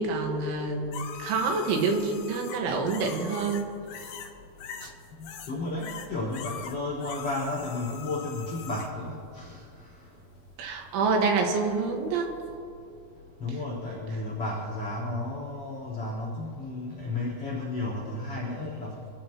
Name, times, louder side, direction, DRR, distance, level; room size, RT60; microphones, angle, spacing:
voice 1, 0.0-3.7 4.8-4.9 10.6-12.3, right 4 dB, 80° right, 2 dB, 4.1 m, -27 dB
sound 1, 0.9-4.3 4.6-5.5 5.8-8.9 12.5-12.6, left 7 dB, 75° left, 1.9 m, -42 dB
voice 2, 5.2-9.6 13.4-18.9, left 2 dB, 35° left, -6 dB, 4.9 m, -33 dB
25.5 x 14.0 x 3.0 m, 2.4 s
omnidirectional pair, 5.3 m